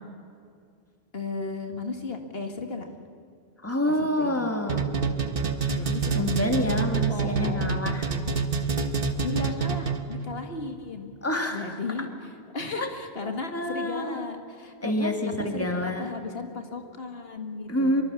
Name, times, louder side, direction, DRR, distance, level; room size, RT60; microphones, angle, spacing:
voice 1, 1.1-2.9 3.9-4.5 5.8-7.6 9.2-11.1 11.5-12.1 12.5-17.9, left 3 dB, 65° left, 5 dB, 2.1 m, -35 dB
voice 2, 3.6-4.9 5.6-5.8 6.1-8.1 11.2-11.8 12.8-12.9 13.2-14.3 14.8-16.1 17.7-18.0, left 1 dB, 15° left, 4 dB, 2.4 m, -28 dB
sound 1, 4.7-10.2, right 5 dB, 60° right, 1.6 m, -26 dB
24.5 x 23.5 x 7.0 m, 2.4 s
omnidirectional pair, 1.1 m